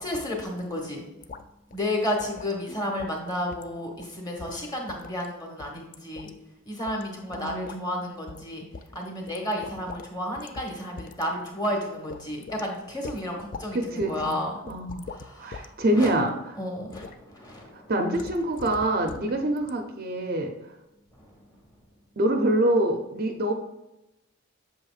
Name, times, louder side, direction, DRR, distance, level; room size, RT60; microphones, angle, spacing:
voice 1, 0.0-1.0 1.7-6.3 6.7-8.6 8.9-14.5 15.1-16.2 16.6-17.9 21.1-21.3, left 1 dB, 15° left, 0 dB, 1.2 m, -32 dB
sound 1, 1.2-1.5 1.7-1.8 2.2-2.6 3.0-3.2 3.5-3.7 4.0-4.1 4.4-5.3 5.6-6.3 6.9-7.0 7.3-7.8 8.3-8.5 8.7-10.1 10.4-10.7 11.0-11.3 11.6-11.7 12.1-12.6 13.0-13.7 14.0-14.3 14.7-15.7 16.0-16.3 16.9-17.2 18.1-19.3 19.6-19.7, left 4 dB, 35° left, 0.3 m, -42 dB
voice 2, 7.3-8.1 13.7-14.4 14.7-15.0 15.4-16.6 17.7-20.5 22.2-23.5, right 1 dB, 40° right, 4 dB, 0.6 m, -26 dB
7.8 x 6.4 x 2.4 m, 0.95 s
head